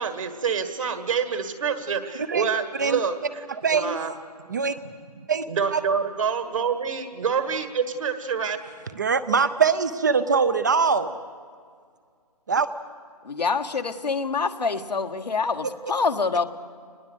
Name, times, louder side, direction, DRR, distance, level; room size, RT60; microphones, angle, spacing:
voice 1, 0.0-4.1 5.5-8.6, right 6 dB, 55° right, 8 dB, 1.8 m, -27 dB
voice 2, 3.6-4.0 4.5-4.7 5.3-5.4 5.7-5.8 8.9-11.2 12.5-12.7, right 5 dB, 30° right, 13 dB, 0.5 m, -22 dB
voice 3, 13.2-16.4, left 4 dB, 85° left, 7 dB, 1.5 m, -26 dB
24.0 x 20.5 x 7.9 m, 2.1 s
hypercardioid pair, 165°, 21 cm